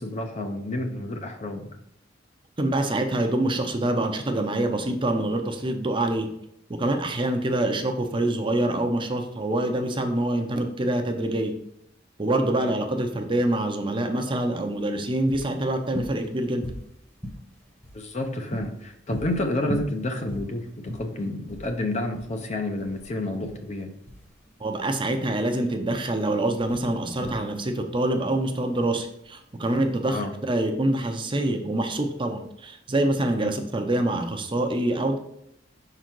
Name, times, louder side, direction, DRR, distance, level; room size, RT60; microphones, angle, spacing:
voice 1, 0.0-1.7 12.6-12.7 17.9-23.9 30.1-30.3 33.4-33.5, left 1 dB, 40° left, 5 dB, 0.6 m, -30 dB
voice 2, 2.6-6.3 6.8-11.6 12.2-16.7 24.6-30.2 30.5-35.2, right 1 dB, 25° right, 5 dB, 0.6 m, -25 dB
sound 1, 14.6-30.1, equal, 10° left, 1.0 m, -40 dB
5.5 x 3.9 x 4.5 m, 0.76 s
head